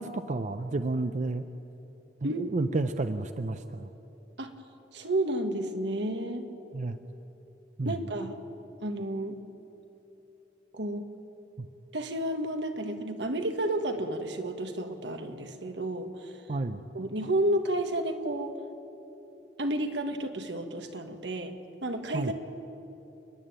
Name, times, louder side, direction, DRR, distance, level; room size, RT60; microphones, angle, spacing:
voice 1, 0.0-1.4 2.2-3.9 6.7-7.0 7.8-8.0 11.6-11.7 16.5-16.9 22.1-22.3, right 2 dB, 45° right, 10 dB, 0.6 m, -31 dB
voice 2, 2.2-2.7 4.4-4.5 4.9-6.5 7.8-8.4 8.8-9.4 10.7-11.1 11.9-16.4 16.9-18.5 19.6-21.5 21.8-22.3, right 1 dB, 85° right, 6 dB, 1.7 m, -31 dB
30.0 x 11.0 x 9.0 m, 3.0 s
head